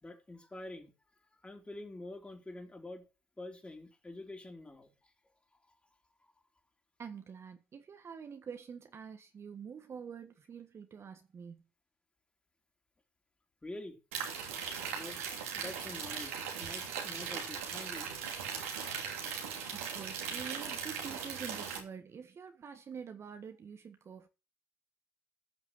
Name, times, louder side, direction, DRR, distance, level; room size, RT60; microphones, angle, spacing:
voice 1, 0.0-0.9 1.2-3.1 3.4-5.1 5.5-5.8 6.2-6.3 13.6-14.0 14.9-15.2 15.5-18.1, left 2 dB, 15° left, 3.6 m, -47 dB
voice 2, 7.0-11.6 19.7-24.3, right 7 dB, 40° right, 1.5 m, -46 dB
sound 1, 14.1-21.8, right 6 dB, 85° right, 2.9 m, -39 dB
15.0 x 6.0 x 6.2 m
hypercardioid pair, 65°, 7 cm